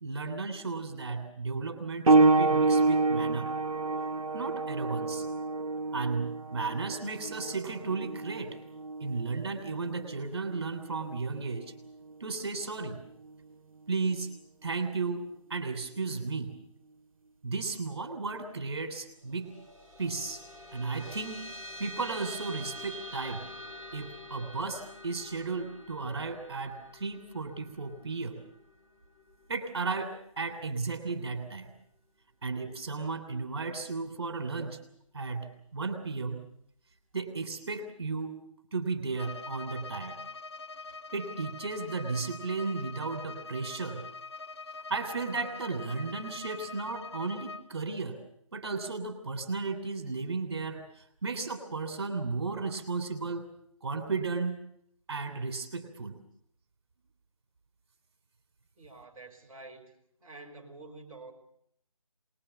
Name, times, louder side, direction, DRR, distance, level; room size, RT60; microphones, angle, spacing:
voice 1, 0.0-3.5 4.3-5.2 5.9-8.6 9.0-11.7 12.2-13.0 13.9-14.3 14.6-16.6 17.4-19.5 20.0-20.4 20.7-21.4 21.8-23.4 23.9-28.4 29.5-31.7 32.4-34.8 35.1-36.4 37.1-38.4 38.7-40.2 41.1-44.1 44.9-48.2 48.5-53.5 53.8-54.6 55.1-56.2, right 4 dB, 50° right, 7 dB, 3.3 m, -34 dB
sound 1, 2.1-12.3 13.2-13.4 14.1-14.2, right 3 dB, 75° right, 1.1 m, -28 dB
sound 2, 19.2-30.0, equal, 10° left, 4.2 m, -46 dB
Bowed string instrument, 39.1-47.7, left 4 dB, 50° left, 1.2 m, -44 dB
voice 2, 58.8-61.3, right 2 dB, 10° right, -7 dB, 3.7 m, -48 dB
24.0 x 20.5 x 6.9 m, 0.68 s
figure-of-eight pair, 160°, 17 cm